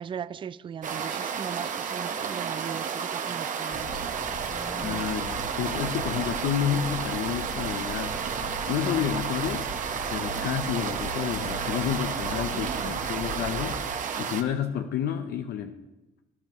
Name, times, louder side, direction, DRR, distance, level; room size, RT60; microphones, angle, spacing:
voice 1, 0.0-4.0 5.0-5.1 8.1-8.2 12.5-13.0, right 8 dB, 30° right, 0.4 m, -38 dB
sound 1, 0.8-14.4, right 7 dB, 50° right, 1.1 m, -32 dB
sound 2, 3.7-13.9, left 2 dB, 25° left, 1.3 m, -40 dB
voice 2, 4.7-8.1 8.7-9.6 10.1-15.7, left 9 dB, 70° left, 0.9 m, -30 dB
19.0 x 10.5 x 3.1 m
cardioid pair, 110°, 17 cm